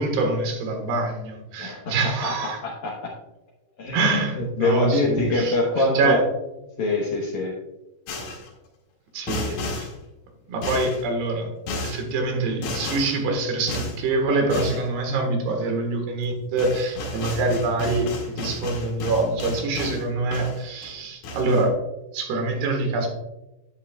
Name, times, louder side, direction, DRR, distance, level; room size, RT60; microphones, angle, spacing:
voice 1, 0.0-2.6 3.9-6.2 9.1-9.9 10.5-11.5 11.8-18.1 18.4-21.8 22.1-23.1, right 3 dB, 80° right, 4 dB, 3.5 m, -25 dB
voice 2, 1.6-2.4 2.6-3.1 3.8-6.2 6.8-7.5, left 2 dB, 65° left, -2 dB, 1.9 m, -24 dB
sound 1, 8.1-8.5 9.3-9.9 10.6-11.0 11.7-12.0 12.6-13.2 13.7-14.0 14.5-14.8 16.2-16.3 16.6-20.0 20.3-20.9 21.2-21.7, left 2 dB, 85° left, 3.8 m, -32 dB
11.0 x 8.6 x 2.3 m, 0.97 s
omnidirectional pair, 4.6 m